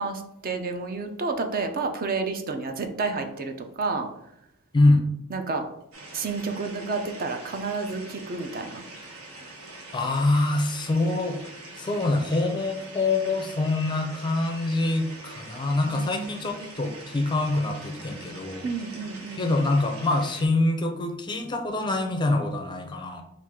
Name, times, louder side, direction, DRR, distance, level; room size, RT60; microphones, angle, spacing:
voice 1, 0.0-4.1 5.3-5.6 6.1-8.8 15.9-16.9 18.6-19.5, right 4 dB, 45° right, 5 dB, 0.5 m, -30 dB
voice 2, 4.7-5.1 9.9-11.4 11.8-18.7 19.4-23.2, left 2 dB, 20° left, 5 dB, 0.4 m, -25 dB
sound 1, 5.9-20.5, right 2 dB, 80° right, 0.9 m, -44 dB
4.5 x 2.4 x 3.6 m, 0.79 s
head